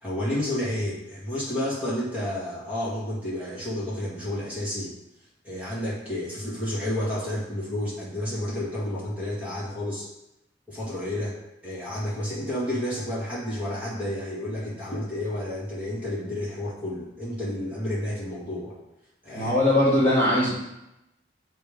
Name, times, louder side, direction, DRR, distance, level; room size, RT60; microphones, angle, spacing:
voice 1, 0.0-4.9 5.4-10.1 10.7-11.4 11.6-18.7 19.2-19.5, left 1 dB, 10° right, -9 dB, 2.1 m, -30 dB
voice 2, 19.3-20.5, left 1 dB, 10° left, -9 dB, 2.1 m, -20 dB
7.8 x 3.5 x 5.1 m, 0.88 s
head